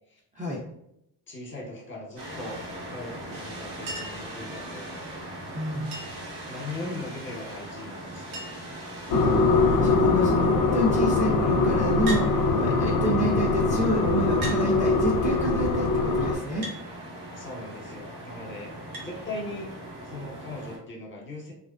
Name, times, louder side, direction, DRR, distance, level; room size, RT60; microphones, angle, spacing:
voice 1, 1.3-2.6 2.9-5.0 6.5-8.8 17.3-19.7 20.0-21.5, left 2 dB, 25° left, -1 dB, 1.0 m, -39 dB
sound 1, 2.2-20.8, right 1 dB, 60° right, 1.4 m, -40 dB
Chink clink, 3.9-4.3 5.9-6.3 7.7-7.8 8.0-8.1 8.3-8.8 9.5-9.9 12.1-12.3 13.4-13.5 14.4-14.6 16.6-16.8 18.9-19.1 20.5-20.6, right 2 dB, 80° right, 0.9 m, -37 dB
voice 2, 5.5-5.9 9.8-16.7, equal, 15° right, -4 dB, 0.5 m, -29 dB
sound 2, 9.1-16.4, left 3 dB, 50° left, 0.5 m, -22 dB
2.5 x 2.1 x 2.5 m, 0.78 s
supercardioid pair, 60°, 47 cm